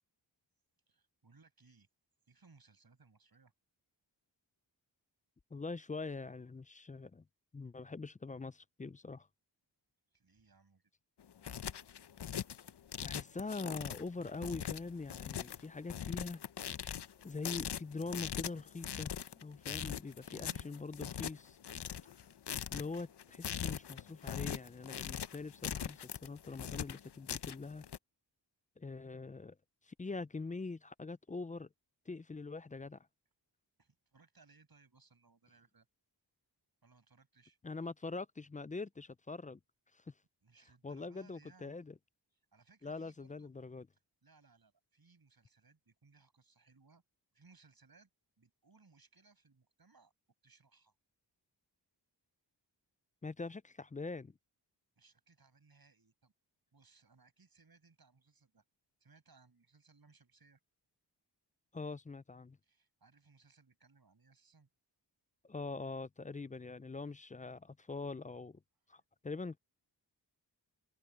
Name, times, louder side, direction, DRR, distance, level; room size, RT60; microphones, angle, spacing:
voice 1, 0.9-1.9 2.3-3.5 10.1-10.9 20.2-20.7 33.8-35.9 36.8-37.6 40.4-41.8 42.3-43.5 44.2-47.0 47.3-48.1 48.4-50.1 50.4-50.9 55.0-56.3 56.7-58.6 59.0-60.6 62.6-64.7, right 4 dB, 55° right, 7.6 m, -65 dB
voice 2, 5.5-7.2 7.5-9.3 13.0-16.4 17.2-21.6 22.7-27.8 28.8-29.5 29.9-31.7 32.1-33.0 37.6-39.6 39.9-40.1 40.8-41.9 42.8-43.9 53.2-54.3 61.7-62.6 65.4-68.6 68.9-69.6, left 3 dB, 20° left, 0.3 m, -43 dB
sound 1, 11.2-28.0, left 9 dB, 65° left, 0.7 m, -41 dB
wide cardioid pair, 110°, 44 cm